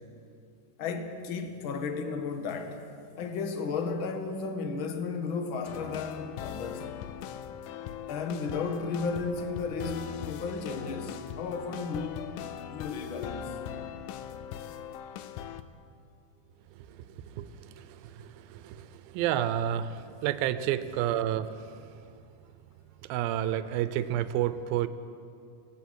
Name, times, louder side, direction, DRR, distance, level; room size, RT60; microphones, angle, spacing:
voice 1, 0.8-6.9 8.1-12.4 12.7-13.6, left 4 dB, 50° left, 1.6 m, -34 dB
sound 1, 5.7-15.6, left 9 dB, 85° left, 2.5 m, -40 dB
voice 2, 17.8-21.5 23.1-24.9, right 11 dB, 85° right, 2.6 m, -30 dB
24.0 x 18.5 x 6.3 m
omnidirectional pair, 4.2 m